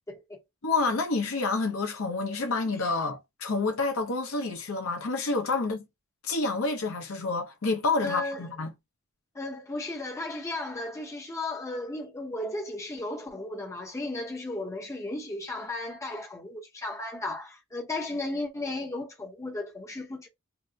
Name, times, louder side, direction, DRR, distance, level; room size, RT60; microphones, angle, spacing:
voice 1, 0.1-0.4 8.0-8.5 9.3-20.3, left 2 dB, 15° left, 0.7 m, -35 dB
voice 2, 0.6-5.9 6.2-8.7, left 3 dB, 65° left, 0.7 m, -28 dB
2.8 x 2.0 x 3.4 m
head